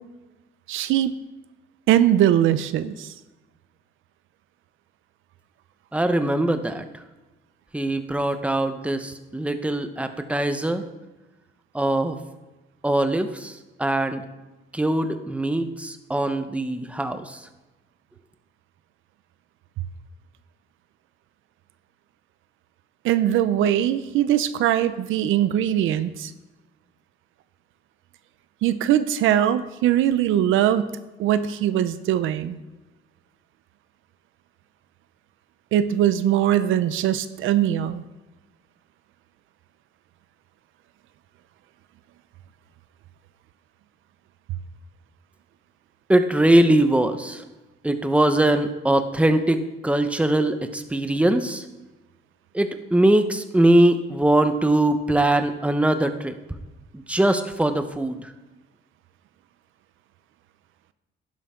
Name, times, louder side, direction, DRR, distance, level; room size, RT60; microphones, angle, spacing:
voice 1, 0.7-1.1 1.9-3.1 23.0-26.3 28.6-30.9 31.2-32.6 35.7-38.0, right 11 dB, 85° right, 13 dB, 0.6 m, -21 dB
voice 2, 5.9-6.8 7.7-10.8 11.7-12.2 12.8-14.2 14.7-17.4 46.1-47.4 47.8-51.6 52.5-56.4 56.9-58.3, right 1 dB, 5° right, 8 dB, 1.0 m, -21 dB
11.5 x 11.0 x 3.8 m, 1.1 s
cardioid pair, 90°, 20 cm